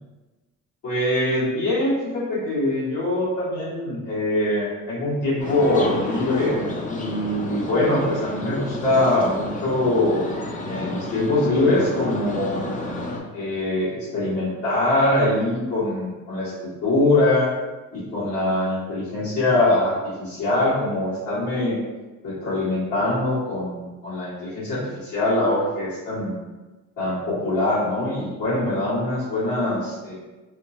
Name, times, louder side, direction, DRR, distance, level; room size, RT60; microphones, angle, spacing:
voice 1, 0.8-10.2 10.6-12.8 13.3-17.5 17.9-21.8 22.2-23.8 24.0-26.4 27.0-30.1, left 1 dB, 80° left, -14 dB, 1.4 m, -23 dB
sound 1, 5.4-13.2, left 2 dB, 25° left, 0.5 m, -31 dB
2.9 x 2.3 x 2.7 m, 1.2 s
cardioid pair, 90°, 30 cm